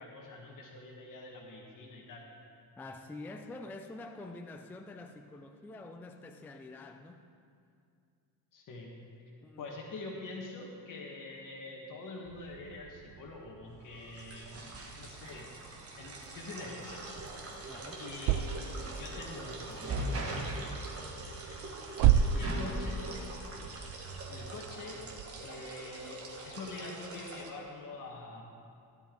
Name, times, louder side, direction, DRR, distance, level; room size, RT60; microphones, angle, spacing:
voice 1, 0.0-2.3 8.5-9.0 9.6-14.5 14.9-15.5 16.0-17.2 18.0-18.6 18.9-20.0 22.3-23.0 24.3-25.0 25.4-28.4, left 3 dB, 55° left, -1 dB, 1.5 m, -45 dB
voice 2, 2.8-7.3 9.4-9.7 17.7-18.0, left 2 dB, 5° left, 5 dB, 0.3 m, -46 dB
sound 1, 12.3-25.5, right 9 dB, 65° right, 0.5 m, -35 dB
sound 2, 13.9-27.5, right 2 dB, 35° right, 1.4 m, -42 dB
sound 3, 15.0-20.6, right 1 dB, 10° right, 0.9 m, -58 dB
15.5 x 11.0 x 3.8 m, 2.4 s
cardioid pair, 160°, 39 cm